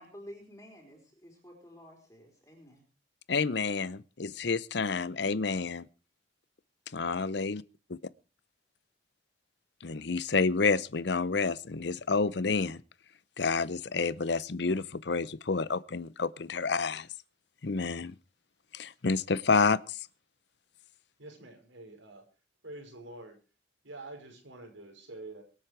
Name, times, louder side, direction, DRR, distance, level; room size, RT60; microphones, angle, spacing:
voice 1, 0.0-2.8, equal, 15° left, 3.8 m, -51 dB
voice 2, 3.3-5.9 6.9-7.6 9.8-12.8 13.4-17.1 17.6-18.1 18.7-20.0, left 4 dB, 60° left, 0.7 m, -29 dB
voice 3, 21.2-22.2 22.6-23.4 23.8-25.4, right 2 dB, 80° right, 5.3 m, -46 dB
24.0 x 8.4 x 4.7 m
head